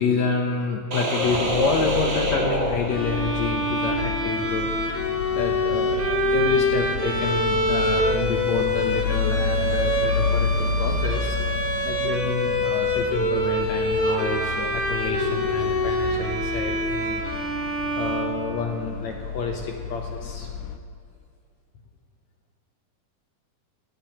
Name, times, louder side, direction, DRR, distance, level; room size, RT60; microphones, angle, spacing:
voice 1, 0.0-4.7 5.0-11.4 11.8-17.2 17.9-20.5, left 4 dB, 70° left, 2 dB, 1.8 m, -28 dB
sound 1, 0.9-3.5, equal, 65° right, 0.8 m, -26 dB
sound 2, 1.2-20.8, left 6 dB, 85° left, 1.5 m, -31 dB
Bowed string instrument, 2.9-19.0, equal, 15° left, 0.5 m, -25 dB
26.5 x 13.0 x 3.0 m, 2.3 s
omnidirectional pair, 4.1 m